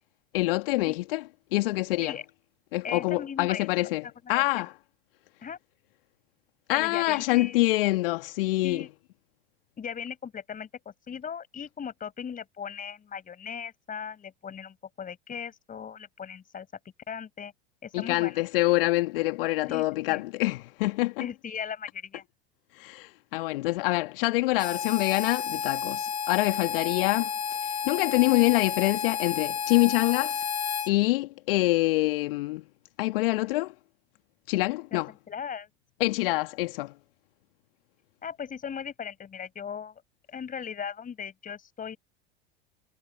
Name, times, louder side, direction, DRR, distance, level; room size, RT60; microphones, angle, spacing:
voice 1, 0.3-2.2 2.7-4.8 6.7-8.9 17.9-21.3 22.7-27.3 27.6-30.4 30.9-32.6 33.0-33.7 34.5-35.1 36.0-36.9, left 20 dB, 60° left, 1.8 m, -26 dB
voice 2, 2.8-3.7 4.2-4.4 5.4-5.6 6.7-7.6 8.6-8.9 9.8-16.7 17.1-17.5 17.8-18.4 19.7-20.2 21.2-22.2 34.9-35.0 35.3-35.7 38.2-40.0 40.3-42.0, left 7 dB, 25° left, 4.9 m, -38 dB
Harmonica, 24.6-30.9, left 8 dB, 85° left, 0.7 m, -31 dB
figure-of-eight pair, 80°, 31 cm